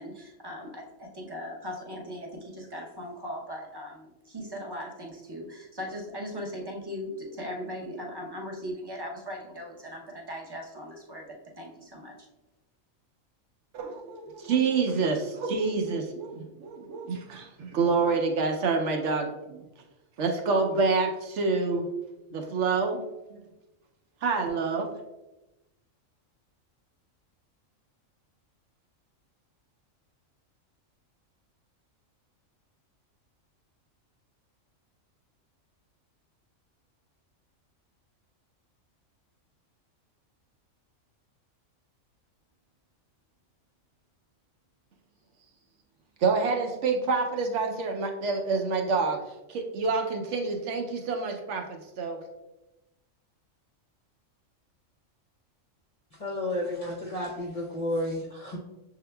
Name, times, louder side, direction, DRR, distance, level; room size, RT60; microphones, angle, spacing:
voice 1, 0.0-12.3, equal, 25° right, 0 dB, 0.5 m, -39 dB
voice 2, 13.7-19.6 20.2-21.9 22.3-23.0 23.3-23.4 24.2-24.9 46.2-49.2 49.5-52.2, right 4 dB, 65° right, 3 dB, 0.9 m, -27 dB
voice 3, 56.1-58.6, left 1 dB, 45° left, -3 dB, 0.5 m, -32 dB
6.5 x 3.6 x 2.2 m, 1.0 s
omnidirectional pair, 1.4 m